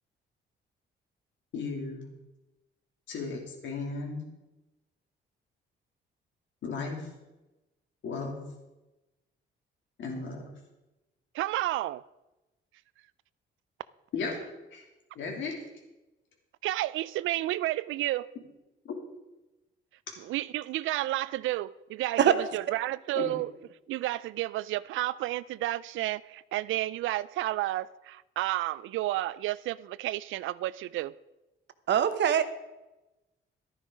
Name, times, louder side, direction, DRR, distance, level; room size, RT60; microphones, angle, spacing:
voice 1, 1.5-2.0 3.1-4.2 6.6-7.1 8.0-8.4 10.0-10.4 14.1-14.4 14.7-14.8 15.1-15.6 18.8-18.9 23.1-23.3, left 4 dB, 70° left, 3.0 m, -35 dB
voice 2, 11.3-12.0 16.6-18.3 20.2-22.2 22.5-23.5 23.9-31.1, right 15 dB, 80° right, 0.4 m, -31 dB
voice 3, 31.9-32.4, right 9 dB, 65° right, 0.9 m, -22 dB
11.5 x 10.0 x 5.1 m
cardioid pair, 90°, 20 cm